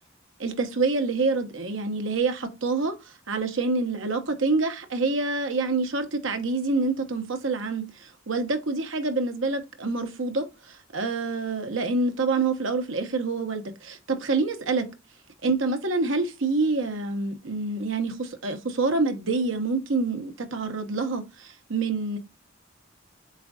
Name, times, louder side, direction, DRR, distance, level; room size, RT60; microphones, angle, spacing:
voice 1, 0.4-14.8 15.4-22.2, right 3 dB, 75° right, 1.1 m, -27 dB
7.7 x 2.6 x 2.4 m
head